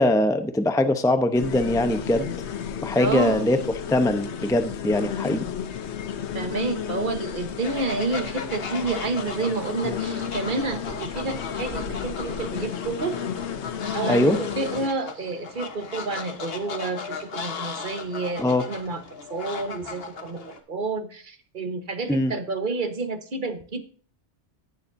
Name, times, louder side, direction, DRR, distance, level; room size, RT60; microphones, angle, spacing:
voice 1, 0.0-2.3 2.8-3.6 3.9-5.5 9.8-10.0 14.1-14.4 18.4-18.6 22.1-22.3, left 1 dB, 5° left, 8 dB, 0.7 m, -22 dB
sound 1, 1.3-14.9, left 8 dB, 75° left, 1.1 m, -33 dB
voice 2, 3.0-3.5 6.3-13.2 13.9-19.0 19.3-23.8, right 3 dB, 50° right, 8 dB, 1.4 m, -29 dB
Fowl, 7.6-20.6, left 5 dB, 60° left, 1.4 m, -37 dB
17.5 x 7.2 x 2.6 m, 0.43 s
omnidirectional pair, 1.1 m